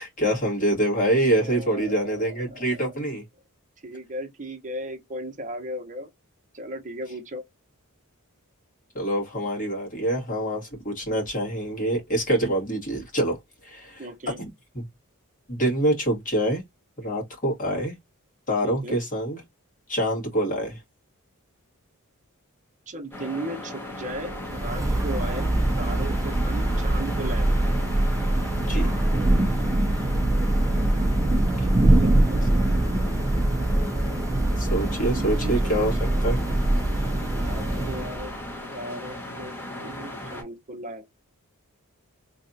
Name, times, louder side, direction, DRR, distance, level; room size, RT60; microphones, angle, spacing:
voice 1, 0.0-3.2 8.9-13.4 13.6-14.1 14.4-14.5 15.5-16.6 17.0-17.9 18.5-19.4 19.9-20.8 28.6-28.9 31.6-31.7 34.6-36.4, right 1 dB, 40° left, 1.8 m, -25 dB
voice 2, 1.3-3.0 3.8-6.1 6.5-7.4 14.0-14.4 18.6-19.0 22.9-25.5 25.8-27.5 31.7-32.3 32.5-32.9 35.0-36.5 37.4-38.3 38.7-41.1, right 1 dB, 35° right, 0.9 m, -37 dB
sound 1, 23.1-40.4, left 1 dB, 10° left, 1.0 m, -37 dB
Thunder / Rain, 24.1-38.5, right 1 dB, 15° right, 0.4 m, -23 dB
3.3 x 2.5 x 2.6 m
head